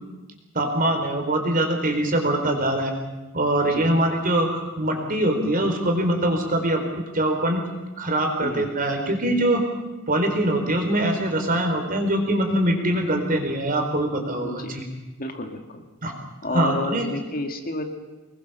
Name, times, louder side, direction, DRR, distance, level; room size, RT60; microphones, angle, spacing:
voice 1, 0.5-2.9 3.3-7.6 8.0-9.6 10.1-14.9 16.0-16.1 16.5-17.1, right 1 dB, 40° right, 4 dB, 4.1 m, -23 dB
voice 2, 14.4-14.8 15.2-15.8 16.4-17.8, left 2 dB, 40° left, 5 dB, 2.3 m, -30 dB
25.0 x 21.0 x 6.9 m, 1.1 s
head